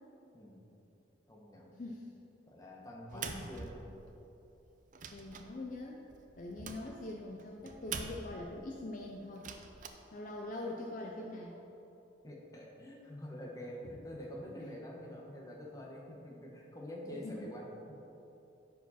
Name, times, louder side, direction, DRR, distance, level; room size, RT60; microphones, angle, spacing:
voice 1, 0.3-0.7 1.3-1.8 2.5-4.0 12.2-18.0, equal, 20° left, -2 dB, 1.0 m, -47 dB
voice 2, 3.1-3.5 5.1-6.0 6.4-9.5 10.1-11.6 13.8-13.9 14.6-14.7 17.1-17.5, left 2 dB, 40° left, -1 dB, 0.5 m, -43 dB
sound 1, 3.1-4.3 4.7-8.6 9.3-9.9, right 5 dB, 40° right, 0.4 m, -45 dB
10.5 x 4.8 x 4.2 m, 3.0 s
head